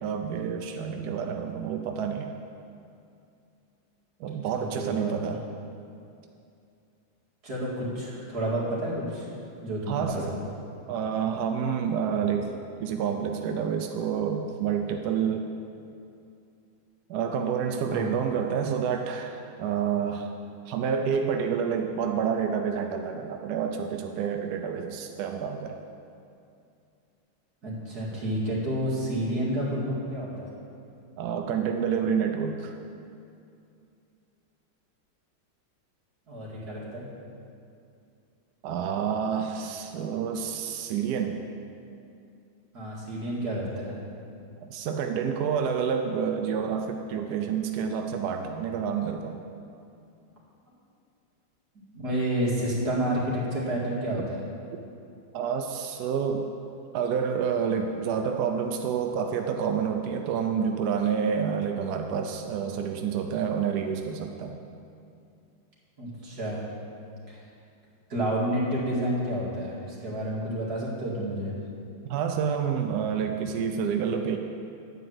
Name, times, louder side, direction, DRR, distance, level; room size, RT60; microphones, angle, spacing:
voice 1, 0.0-2.3 4.2-5.4 9.9-10.4 10.9-12.5 12.8-15.4 17.1-20.3 20.7-25.8 31.2-32.7 38.6-41.4 44.6-49.4 55.3-56.5 56.9-64.6 72.1-74.4, right 7 dB, 75° right, 4 dB, 0.9 m, -28 dB
voice 2, 4.2-5.4 7.4-9.3 9.6-10.2 17.9-18.1 27.6-30.5 36.3-37.1 42.7-44.0 51.9-54.4 66.0-66.6 67.3-67.4 68.1-71.5, right 1 dB, 50° right, -7 dB, 2.7 m, -30 dB
9.7 x 4.9 x 7.8 m, 2.5 s
omnidirectional pair, 2.2 m